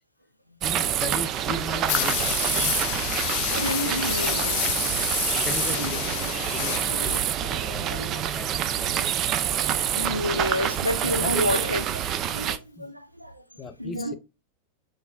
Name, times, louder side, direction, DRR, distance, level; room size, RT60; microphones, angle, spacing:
voice 1, 0.6-2.8 5.4-6.2 6.5-7.1 7.5-8.5 8.8-9.1 11.0-11.6 12.8-12.9 13.6-14.2, left 2 dB, 20° left, 0.7 m, -37 dB
sound 1, 0.6-12.6, right 10 dB, 35° right, 0.4 m, -27 dB
sound 2, 1.9-7.2, left 17 dB, 45° left, 0.3 m, -29 dB
voice 2, 3.5-4.7 5.8-6.0 6.9-7.1 7.4-8.2 9.7-11.8 12.3-13.4 13.8-14.2, left 1 dB, 90° right, 0.5 m, -30 dB
6.3 x 3.1 x 2.3 m
figure-of-eight pair, 90°, 0 cm